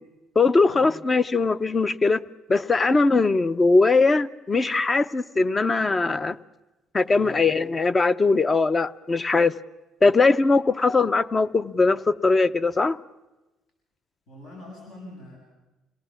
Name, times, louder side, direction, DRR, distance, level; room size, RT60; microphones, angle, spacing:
voice 1, 0.4-2.2 2.5-6.4 6.9-9.5 10.0-13.0, left 3 dB, 25° left, 0.7 m, -20 dB
voice 2, 7.0-7.5 14.3-15.4, left 1 dB, 70° left, 6.8 m, -44 dB
27.0 x 18.5 x 7.2 m
cardioid pair, 100°, 0 cm